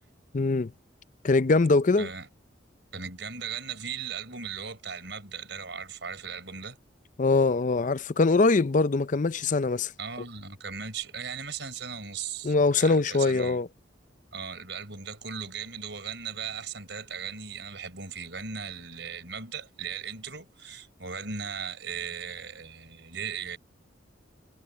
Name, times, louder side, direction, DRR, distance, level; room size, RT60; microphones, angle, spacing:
voice 1, 0.3-0.7 1.2-2.1 7.2-9.9 12.4-13.7, left 3 dB, 40° left, 0.5 m, -23 dB
voice 2, 2.0-2.3 2.9-6.8 10.0-13.6 14.3-23.6, right 6 dB, 65° right, 5.0 m, -37 dB
head